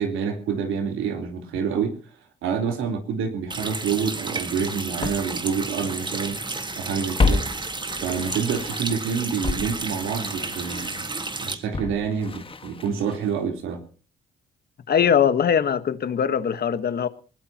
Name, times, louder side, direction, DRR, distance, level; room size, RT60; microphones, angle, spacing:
voice 1, 0.0-2.0 2.4-6.4 6.8-7.5 8.0-11.0 11.4-13.8, right 6 dB, 85° right, 3.7 m, -27 dB
Water tap faucet, 3.5-11.5, right 3 dB, 25° right, 1.7 m, -32 dB
Walk footsteps, 4.3-4.4 5.0-6.5 6.8-9.0 9.4-13.5 13.7-13.8, left 4 dB, 25° left, 1.5 m, -30 dB
voice 2, 14.9-17.1, left 8 dB, 50° left, 1.3 m, -21 dB
21.0 x 19.5 x 2.9 m
cardioid pair, 90°, 20 cm